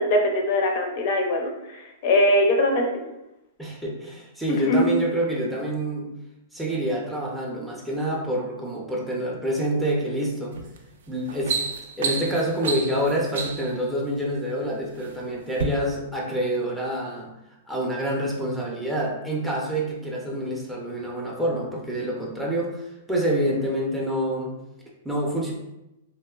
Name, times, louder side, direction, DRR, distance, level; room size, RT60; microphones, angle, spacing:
voice 1, 0.0-2.8 4.7-4.9, left 1 dB, 50° left, 2 dB, 0.5 m, -21 dB
voice 2, 3.6-6.1 6.5-10.6 11.1-11.6 12.0-17.3 17.7-24.5 25.0-25.5, right 1 dB, 5° right, -4 dB, 0.5 m, -27 dB
sound 1, 10.5-10.8 11.2-13.8 14.6-15.1 15.5-15.7, right 5 dB, 75° right, 0.3 m, -29 dB
3.0 x 2.1 x 2.3 m, 0.91 s
hypercardioid pair, 145°, 0 cm